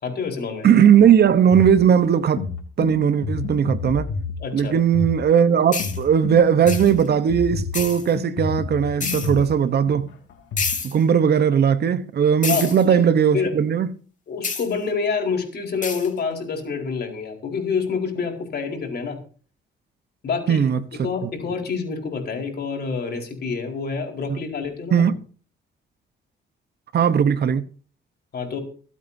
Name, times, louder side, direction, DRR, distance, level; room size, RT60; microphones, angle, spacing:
voice 1, 0.0-0.7 4.4-4.7 12.5-13.0 13.3-13.5 14.3-19.2 20.2-20.7 21.0-25.1 28.3-28.6, left 5 dB, 55° left, 4.4 m, -27 dB
voice 2, 0.6-2.4 2.8-4.1 4.5-10.1 10.8-13.9 20.5-21.3 24.9-25.2 26.9-27.7, right 8 dB, 55° right, 1.0 m, -18 dB
sound 1, 1.0-10.7, left 4 dB, 85° left, 3.2 m, -31 dB
sound 2, 5.7-6.0 6.7-7.0 7.7-8.1 9.0-9.3 10.6-10.9 12.4-12.8 14.4-14.7 15.8-16.1, left 5 dB, 40° left, 3.0 m, -28 dB
25.0 x 8.4 x 2.8 m
cardioid pair, 90°, 20 cm